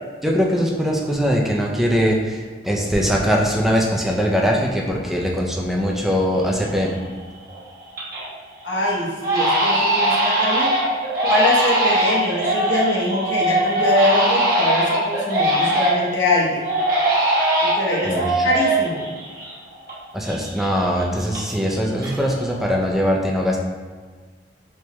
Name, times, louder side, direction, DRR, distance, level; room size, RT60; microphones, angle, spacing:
voice 1, 0.2-7.0 18.0-18.4 20.1-23.6, equal, ahead, -2 dB, 0.4 m, -21 dB
Crying sobbing, 6.1-6.2 6.6-7.1 7.5-8.3 8.6-8.8 9.2-16.2 16.6-20.0 20.2-21.7 22.0-22.6, right 1 dB, 50° right, 1.1 m, -21 dB
voice 2, 8.6-10.7 11.2-16.6 17.6-19.1, left 1 dB, 80° left, -4 dB, 0.9 m, -23 dB
4.5 x 2.1 x 2.9 m, 1.5 s
head